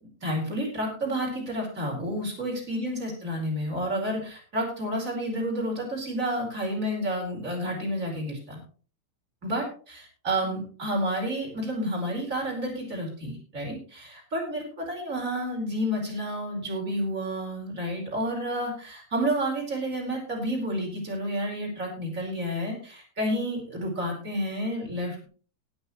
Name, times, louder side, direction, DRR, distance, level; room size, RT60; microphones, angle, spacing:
voice 1, 0.2-8.6 9.4-25.2, equal, 15° right, 0 dB, 4.3 m, -30 dB
18.0 x 9.7 x 3.2 m, 0.40 s
omnidirectional pair, 5.9 m